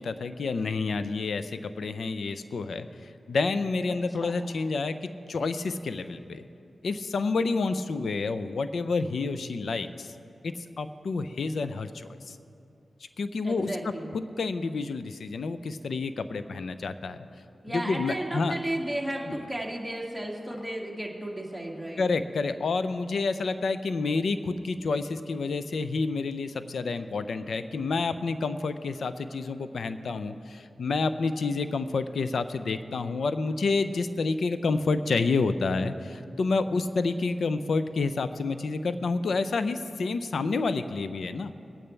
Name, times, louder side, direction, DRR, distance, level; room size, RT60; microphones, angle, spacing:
voice 1, 0.0-6.4 6.8-10.1 10.4-12.4 13.2-13.7 14.1-17.2 17.7-18.5 19.3-19.4 22.0-41.5, left 4 dB, 75° left, 11 dB, 0.5 m, -29 dB
voice 2, 3.9-4.4 13.4-14.1 17.6-22.0, right 1 dB, ahead, -2 dB, 2.3 m, -34 dB
21.5 x 8.8 x 3.3 m, 2.6 s
cardioid pair, 45°, 0 cm